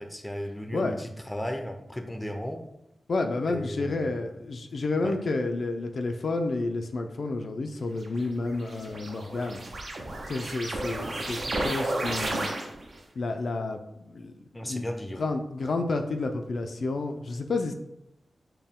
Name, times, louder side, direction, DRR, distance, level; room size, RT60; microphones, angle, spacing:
voice 1, 0.0-2.6 3.5-4.3 5.0-5.1 14.5-15.3, equal, 10° left, 5 dB, 0.5 m, -35 dB
voice 2, 3.1-9.6 10.3-12.5 13.2-14.8 15.2-17.7, left 3 dB, 65° left, 5 dB, 0.3 m, -30 dB
sound 1, 8.0-13.0, right 1 dB, 55° right, 0.7 m, -33 dB
4.3 x 2.2 x 3.5 m, 0.83 s
wide cardioid pair, 80°, 0 cm